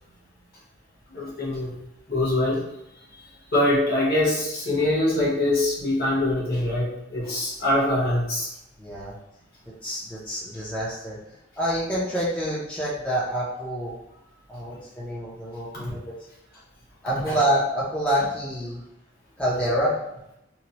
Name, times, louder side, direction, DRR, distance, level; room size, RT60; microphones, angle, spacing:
voice 1, 1.1-1.7 2.1-2.6 3.5-8.5 17.3-17.4, left 1 dB, 50° left, -6 dB, 1.1 m, -23 dB
voice 2, 8.8-9.2 9.8-11.2 11.6-13.9 14.5-16.1 17.0-18.8 19.4-20.0, equal, 5° left, -8 dB, 0.5 m, -27 dB
3.0 x 2.1 x 2.8 m, 0.85 s
head